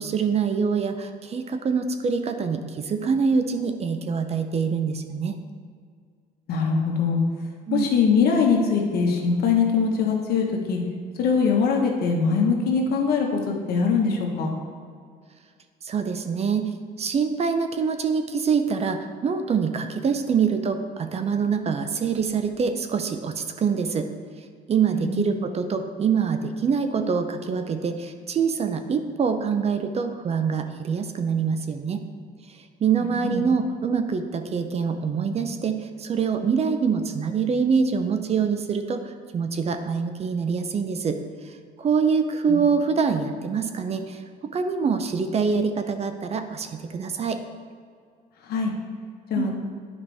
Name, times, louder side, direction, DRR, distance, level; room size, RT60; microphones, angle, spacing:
voice 1, 0.0-5.4 7.7-7.9 15.8-24.1 24.7-32.0 32.8-41.2 41.5-44.2 44.5-47.4 49.3-49.5, right 6 dB, 40° right, 8 dB, 0.6 m, -25 dB
voice 2, 6.5-7.2 7.7-10.8 11.2-14.5 24.9-25.2 33.2-33.4 42.5-42.6 48.5-48.7 49.3-49.5, left 5 dB, 70° left, 1 dB, 1.3 m, -22 dB
10.5 x 5.2 x 3.5 m, 2.1 s
cardioid pair, 110°, 17 cm